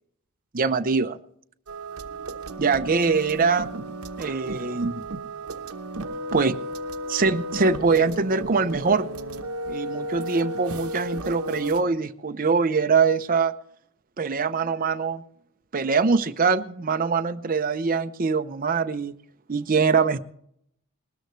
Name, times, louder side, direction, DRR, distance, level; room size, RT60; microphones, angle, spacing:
voice 1, 0.5-1.2 2.6-3.7 4.2-5.0 6.3-6.5 7.1-9.1 9.7-13.5 14.2-15.2 15.7-19.1 19.5-20.2, right 4 dB, 40° right, 8 dB, 0.7 m, -23 dB
sound 1, 1.7-11.8, right 1 dB, 80° right, 1.0 m, -34 dB
20.5 x 13.5 x 3.2 m, 0.68 s
head